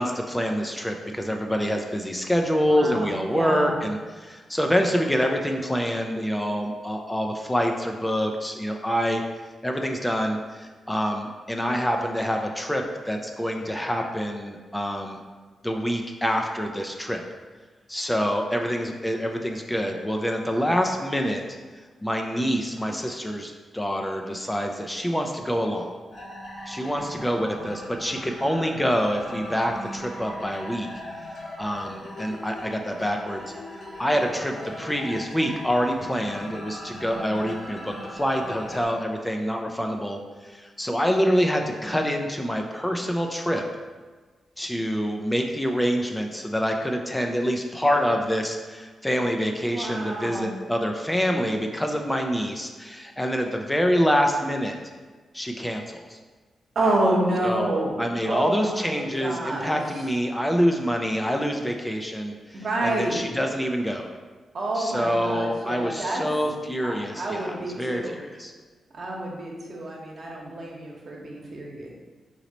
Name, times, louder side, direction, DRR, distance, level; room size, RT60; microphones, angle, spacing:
voice 1, 0.0-9.2 9.6-15.2 15.6-17.2 17.9-21.6 22.0-25.9 26.7-30.9 31.6-33.4 33.7-43.6 44.6-54.8 55.3-56.2 57.4-57.7 58.0-64.1 64.7-68.5, equal, 10° left, 3 dB, 0.4 m, -26 dB
voice 2, 2.6-3.7 49.7-50.5 56.7-58.0 58.3-59.8 62.5-63.3 64.5-66.2 66.8-68.2 68.9-71.9, right 1 dB, 60° right, -2 dB, 1.0 m, -28 dB
sound 1, 26.1-38.8, equal, 60° left, 1.5 m, -39 dB
3.9 x 3.0 x 4.0 m, 1.4 s
cardioid pair, 70°, 0 cm